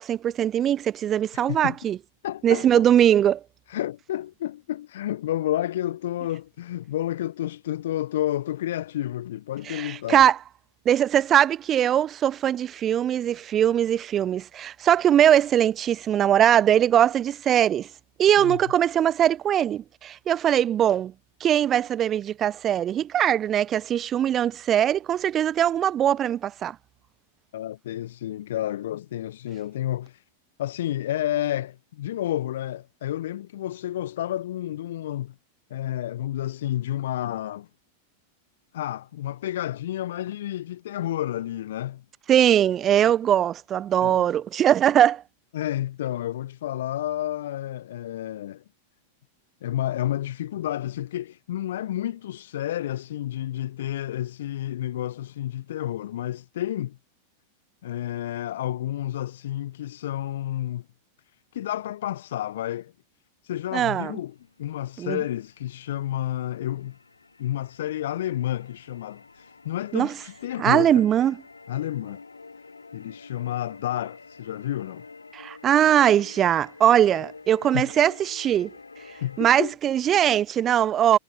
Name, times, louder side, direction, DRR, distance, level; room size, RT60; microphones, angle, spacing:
voice 1, 0.0-2.0 2.4-3.4 9.7-10.4 10.9-17.9 18.2-21.1 21.4-26.8 42.3-45.2 63.7-64.2 65.0-65.2 69.9-70.1 70.6-71.4 75.3-78.7 79.4-81.2, right 10 dB, 30° right, 0.5 m, -21 dB
voice 2, 1.3-1.8 2.2-2.6 3.7-10.2 18.4-18.6 27.5-30.2 30.6-35.3 35.7-37.7 38.7-42.0 44.0-44.3 45.5-48.6 49.6-57.0 57.8-60.8 61.5-62.9 63.4-67.0 67.4-71.0 71.7-72.2 72.9-75.0 77.7-77.9 79.2-79.7, left 12 dB, 60° left, 1.4 m, -30 dB
sound 1, 64.3-79.5, left 4 dB, 80° left, 3.0 m, -48 dB
figure-of-eight pair, 90°, 0 cm